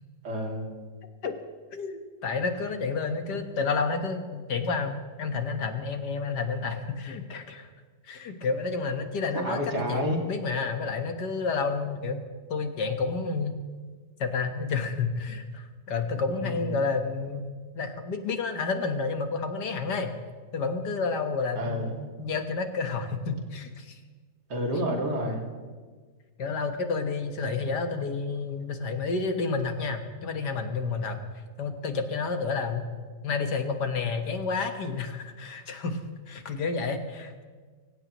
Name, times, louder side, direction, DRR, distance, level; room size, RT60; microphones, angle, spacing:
voice 1, 0.2-0.7 9.4-10.2 16.3-16.8 21.6-22.1 24.5-25.4, equal, 80° right, 0 dB, 3.0 m, -30 dB
voice 2, 1.7-7.7 8.1-12.2 12.5-13.5 14.2-17.4 17.8-20.1 20.5-21.9 22.2-24.0 26.4-31.2 31.6-32.9 33.2-36.0 36.3-37.4, left 4 dB, 90° left, 6 dB, 1.9 m, -30 dB
25.0 x 16.0 x 3.0 m, 1.5 s
omnidirectional pair, 1.7 m